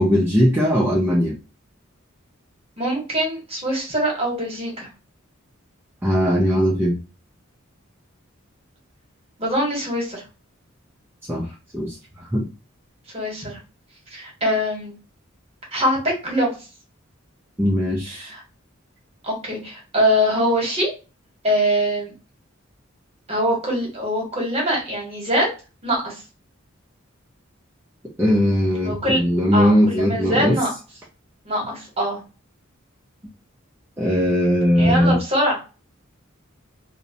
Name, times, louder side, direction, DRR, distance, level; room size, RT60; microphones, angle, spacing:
voice 1, 0.0-1.4 6.0-7.0 11.3-11.5 11.7-12.5 17.6-18.3 28.2-30.6 34.0-35.2, equal, 10° right, -4 dB, 0.4 m, -19 dB
voice 2, 2.8-4.9 9.4-10.2 13.1-13.6 14.1-14.9 15.7-16.5 18.2-18.4 19.2-20.9 21.4-22.1 23.3-25.5 25.8-26.2 28.8-29.2 29.5-30.7 31.4-32.2 34.8-35.6, equal, 30° right, -1 dB, 1.0 m, -23 dB
2.6 x 2.0 x 2.6 m, 0.32 s
head